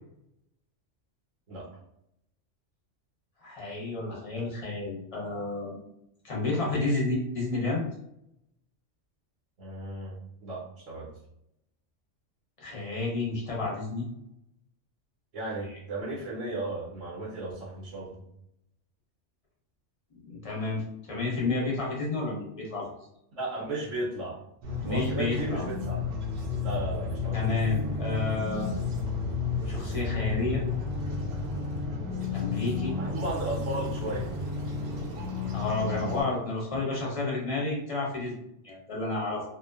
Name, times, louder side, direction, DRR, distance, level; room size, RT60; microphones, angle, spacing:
voice 1, 3.4-5.8 6.2-7.8 12.6-14.0 15.7-15.8 20.2-23.0 24.8-25.7 27.3-28.7 29.6-30.6 32.3-33.0 35.5-39.4, left 3 dB, 35° left, -4 dB, 0.7 m, -31 dB
voice 2, 9.6-10.2 10.4-11.1 15.3-18.2 23.4-24.4 24.9-26.1 26.6-27.5 33.0-34.3, right 2 dB, 85° right, -6 dB, 1.2 m, -35 dB
sound 1, 24.6-36.2, left 4 dB, 65° right, 0.8 m, -32 dB
2.6 x 2.1 x 2.3 m, 0.78 s
omnidirectional pair, 1.3 m